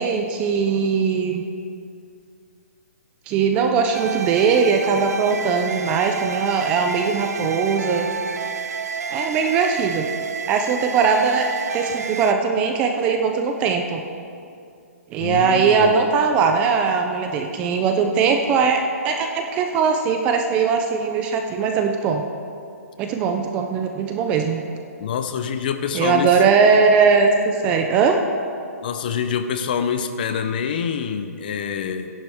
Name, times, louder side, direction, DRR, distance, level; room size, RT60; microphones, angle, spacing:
voice 1, 0.0-1.4 3.3-8.1 9.1-10.1 10.5-11.5 11.7-14.0 15.1-22.2 23.0-24.6 25.9-28.2, right 5 dB, 15° right, 4 dB, 0.4 m, -20 dB
sound 1, 3.9-12.3, right 5 dB, 90° right, 0.7 m, -29 dB
voice 2, 15.2-16.0 25.0-26.3 28.8-32.1, left 7 dB, 35° left, 9 dB, 0.6 m, -26 dB
14.5 x 10.5 x 3.5 m, 2.4 s
hypercardioid pair, 170°, 8 cm